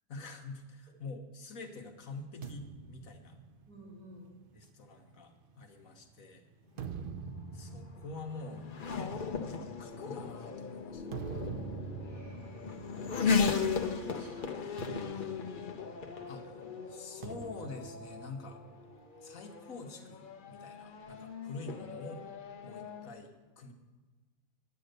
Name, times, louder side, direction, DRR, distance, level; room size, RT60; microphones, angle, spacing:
voice 1, 0.1-3.4 4.5-6.4 7.5-11.2 16.3-18.6 19.2-22.3 22.6-23.7, left 3 dB, 60° left, 4 dB, 1.4 m, -46 dB
sound 1, 2.4-6.0 6.5-14.0 14.2-14.4 14.8-16.4 17.2-19.0, right 6 dB, 90° right, 0.4 m, -46 dB
voice 2, 3.6-4.3 12.0-13.2 13.8-15.6 22.6-22.7, left 1 dB, 70° right, -6 dB, 4.5 m, -53 dB
Race car auto racing / Accelerating revving vroom, 6.8-23.1, left 5 dB, 40° left, 0.8 m, -37 dB
10.5 x 9.1 x 6.6 m, 1.3 s
omnidirectional pair, 1.7 m